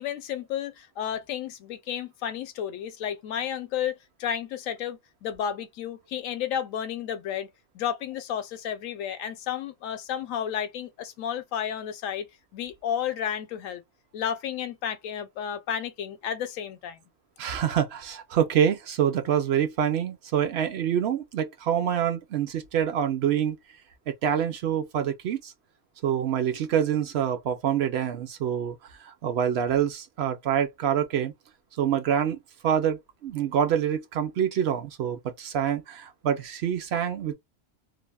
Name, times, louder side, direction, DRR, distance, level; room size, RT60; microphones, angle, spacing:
voice 1, 0.0-7.5 7.7-12.3 12.5-13.8 14.1-17.0, left 9 dB, 75° left, 0.9 m, -32 dB
voice 2, 17.4-23.6 24.1-25.5 26.0-28.8 29.0-31.3 31.8-32.4 32.6-37.3, right 9 dB, 65° right, 0.7 m, -26 dB
3.2 x 2.0 x 2.2 m
omnidirectional pair, 1.4 m